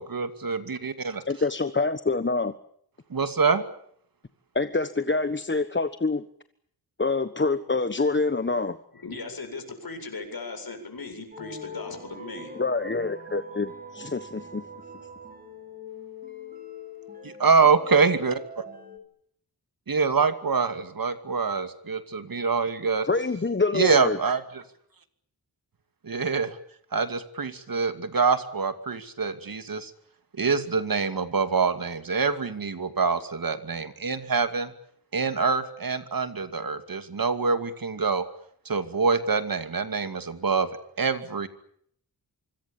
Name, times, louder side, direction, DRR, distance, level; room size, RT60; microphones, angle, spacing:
voice 1, 0.0-1.2 3.1-3.6 17.4-18.4 19.9-23.1 23.7-24.6 26.0-26.6 26.9-29.9 30.4-34.7 35.1-38.3 38.7-40.7 41.0-41.5, right 5 dB, 55° right, 10 dB, 2.6 m, -25 dB
voice 2, 1.3-2.5 4.5-6.2 7.0-8.8 12.5-14.6 23.1-24.2, left 3 dB, 30° left, 11 dB, 1.3 m, -26 dB
voice 3, 8.9-12.5, left 3 dB, 60° left, 7 dB, 7.9 m, -38 dB
sound 1, 11.3-19.0, left 2 dB, 20° right, 6.2 m, -43 dB
26.5 x 25.5 x 7.2 m, 0.66 s
wide cardioid pair, 115°, 40 cm